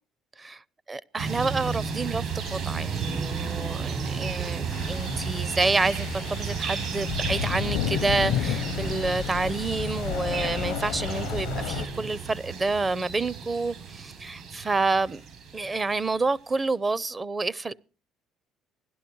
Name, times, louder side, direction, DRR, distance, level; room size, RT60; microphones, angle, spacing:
voice 1, 0.9-15.2 15.5-17.7, right 3 dB, 25° right, 0.7 m, -28 dB
sound 1, 1.2-16.2, right 5 dB, 70° right, 7.7 m, -33 dB
sound 2, 4.7-11.9, left 11 dB, 80° left, 0.7 m, -32 dB
16.5 x 12.0 x 4.7 m
supercardioid pair, 75°, 0 cm